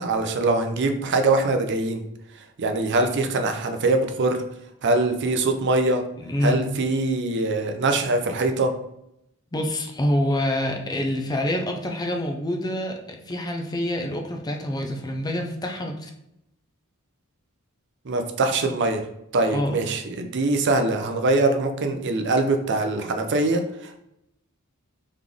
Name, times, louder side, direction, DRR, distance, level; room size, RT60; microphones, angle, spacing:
voice 1, 0.0-2.0 2.6-4.4 4.8-6.0 6.4-8.7 18.1-19.0 19.3-24.0, right 2 dB, 55° right, 5 dB, 0.6 m, -23 dB
voice 2, 6.2-6.6 9.5-16.1 19.5-19.8, left 1 dB, 20° left, 3 dB, 0.6 m, -26 dB
4.0 x 3.2 x 3.5 m, 0.80 s
head